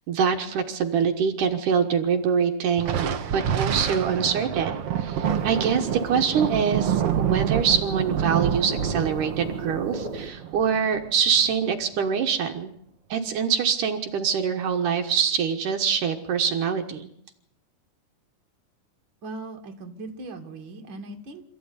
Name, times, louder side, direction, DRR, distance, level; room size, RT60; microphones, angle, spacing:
voice 1, 0.1-3.1 3.3-4.7 5.0-12.7 13.1-17.1, right 7 dB, 75° right, 5 dB, 2.8 m, -24 dB
Thunder, 2.8-11.5, right 9 dB, 55° right, 2.0 m, -27 dB
sound 1, 5.2-10.3, right 3 dB, 15° right, 1.9 m, -36 dB
voice 2, 19.2-21.4, right 2 dB, 40° right, 3 dB, 2.9 m, -39 dB
27.0 x 15.0 x 9.7 m, 0.73 s
omnidirectional pair, 3.8 m